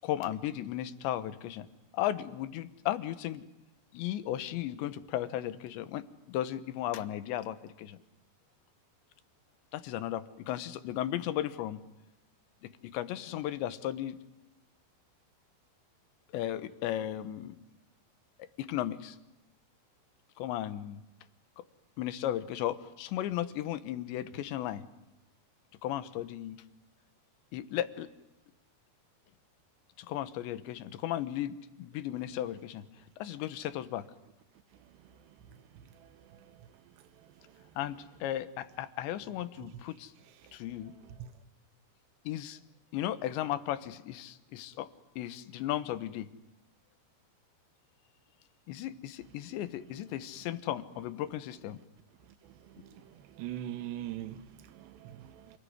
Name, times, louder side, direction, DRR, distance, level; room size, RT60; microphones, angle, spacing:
voice 1, 0.0-1.7 1.9-3.5 3.9-8.0 9.7-11.8 12.6-14.2 16.3-17.6 18.6-19.2 20.4-21.0 21.6-21.7 22.0-24.8 25.8-26.6 27.5-28.1 30.0-32.8 33.2-34.1 37.8-40.1 40.5-40.9 42.3-42.6 42.9-44.9 45.2-46.3 48.7-51.8, left 12 dB, 85° left, 3.4 m, -35 dB
voice 2, 53.4-55.6, right 12 dB, 80° right, 3.3 m, -41 dB
28.5 x 19.5 x 9.6 m
omnidirectional pair, 5.0 m